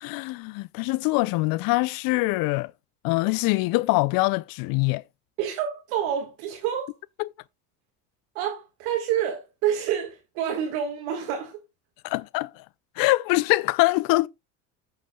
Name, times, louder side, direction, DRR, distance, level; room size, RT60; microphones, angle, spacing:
voice 1, 0.0-2.7 3.0-5.0 7.2-7.3 12.0-12.6 13.0-14.3, left 22 dB, 55° left, 0.5 m, -24 dB
voice 2, 5.4-6.9 8.3-11.6, right 9 dB, 70° right, 1.7 m, -28 dB
15.0 x 6.7 x 2.2 m
hypercardioid pair, 80°, 42 cm